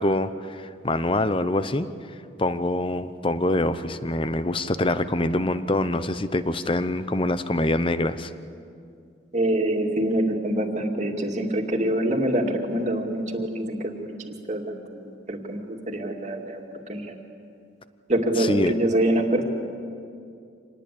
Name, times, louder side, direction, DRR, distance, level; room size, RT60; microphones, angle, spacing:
voice 1, 0.0-1.9 2.4-8.3 18.4-18.7, left 1 dB, 25° left, 12 dB, 0.8 m, -25 dB
voice 2, 9.3-16.6 16.9-17.2 18.1-19.4, right 1 dB, 35° right, 2 dB, 2.4 m, -25 dB
26.0 x 19.5 x 8.5 m, 2.4 s
head